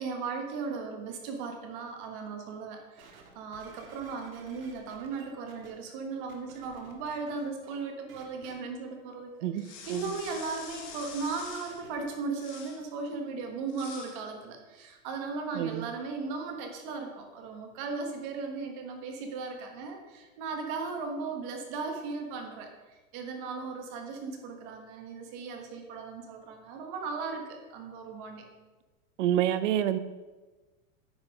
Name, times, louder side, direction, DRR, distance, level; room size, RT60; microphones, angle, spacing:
voice 1, 0.0-28.4, right 4 dB, 35° right, 4 dB, 1.4 m, -37 dB
sound 1, 3.0-5.7 6.3-7.8 8.1-8.5 9.8-12.0 12.7-12.8, right 6 dB, 80° right, 1.9 m, -53 dB
sound 2, 9.6-11.8 12.3-12.8 13.7-14.2, left 6 dB, 30° left, 1.2 m, -46 dB
voice 2, 15.5-15.9 29.2-30.0, right 11 dB, 60° right, 13 dB, 0.7 m, -27 dB
9.7 x 5.7 x 5.3 m, 1.2 s
supercardioid pair, 165°, 41 cm